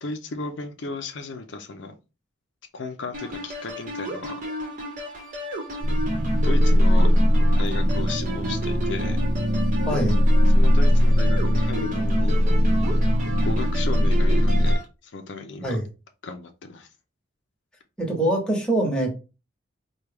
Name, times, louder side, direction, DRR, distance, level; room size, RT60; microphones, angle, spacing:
voice 1, 0.0-1.9 2.7-4.4 6.4-7.1 7.6-9.2 10.5-12.5 13.4-15.8 16.2-16.9, left 3 dB, 65° left, 6 dB, 0.5 m, -35 dB
sound 1, 3.1-14.8, equal, 40° right, 1.0 m, -33 dB
sound 2, 5.8-14.8, equal, 65° right, 0.6 m, -20 dB
voice 2, 9.8-10.2 15.6-15.8 18.0-19.2, right 1 dB, 5° left, -2 dB, 1.1 m, -24 dB
4.5 x 2.2 x 3.3 m, 0.30 s
head